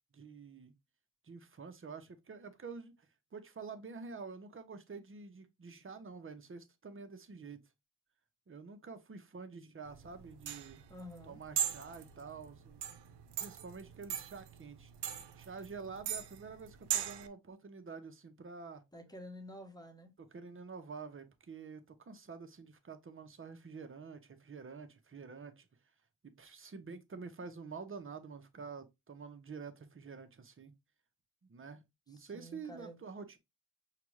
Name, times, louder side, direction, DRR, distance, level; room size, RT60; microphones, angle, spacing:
voice 1, 0.1-0.7 1.2-2.9 3.3-7.6 8.5-10.8 11.2-12.8 13.4-14.9 15.4-18.8 20.2-25.7 26.2-30.7 31.5-33.4, right 5 dB, 30° right, 0.8 m, -48 dB
sound 1, 9.9-17.3, right 9 dB, 75° right, 0.6 m, -39 dB
voice 2, 10.9-11.4 18.9-20.1 32.1-33.0, equal, 10° left, 1.0 m, -50 dB
5.7 x 2.3 x 3.1 m
cardioid pair, 80°, 41 cm